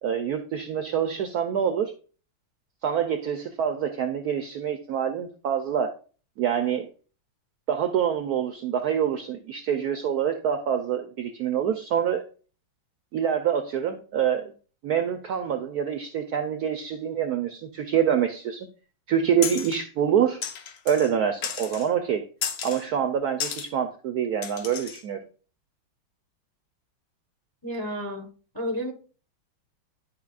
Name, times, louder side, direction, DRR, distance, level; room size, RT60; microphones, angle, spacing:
voice 1, 0.0-1.9 2.8-5.9 6.4-6.9 7.7-12.3 13.1-14.5 14.8-18.7 19.1-20.4 20.8-22.3 22.6-25.2, right 8 dB, 75° right, 7 dB, 0.9 m, -26 dB
sound 1, 19.4-19.8 20.4-21.1 21.4-21.9 22.4-22.8 23.4-23.7 24.4-25.0, left 8 dB, 65° left, 1.3 m, -33 dB
voice 2, 27.6-28.3 28.5-28.9, equal, 15° left, 3 dB, 0.7 m, -31 dB
10.5 x 5.0 x 2.4 m, 0.38 s
omnidirectional pair, 2.2 m